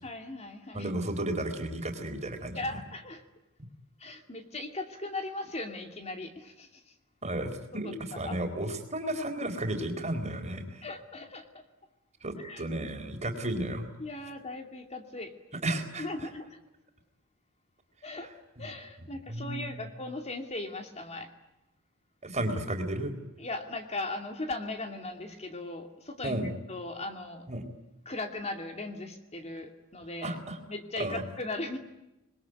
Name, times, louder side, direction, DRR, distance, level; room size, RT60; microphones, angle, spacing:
voice 1, 0.0-0.9 2.5-3.2 4.0-6.9 7.8-8.4 10.8-11.7 12.4-12.7 14.0-15.3 16.0-16.6 18.0-18.3 18.6-21.3 23.4-26.4 26.7-27.5 28.1-30.4 30.7-31.8, left 2 dB, 30° left, 5 dB, 2.6 m, -38 dB
voice 2, 0.7-2.6 7.2-10.9 12.2-13.9 15.6-16.1 19.3-19.8 22.2-23.1 26.2-26.5 27.5-27.6 30.2-30.6 31.0-31.2, right 1 dB, 30° right, 5 dB, 4.2 m, -33 dB
27.0 x 21.5 x 9.5 m, 0.92 s
head